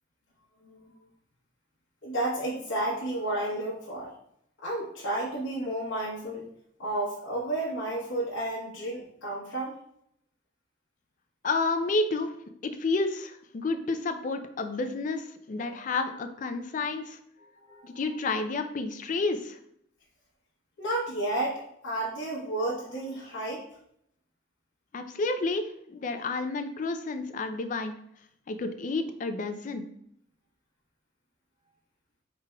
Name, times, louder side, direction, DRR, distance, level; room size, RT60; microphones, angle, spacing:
voice 1, 2.0-4.1 4.6-6.5 6.8-9.8 15.6-15.8 17.6-17.9 20.8-23.6, right 1 dB, 80° left, -6 dB, 0.9 m, -32 dB
voice 2, 11.4-12.3 12.6-17.2 17.8-19.6 24.9-27.9 28.5-29.9, left 3 dB, 40° left, 8 dB, 0.4 m, -30 dB
5.0 x 3.3 x 2.2 m, 0.71 s
head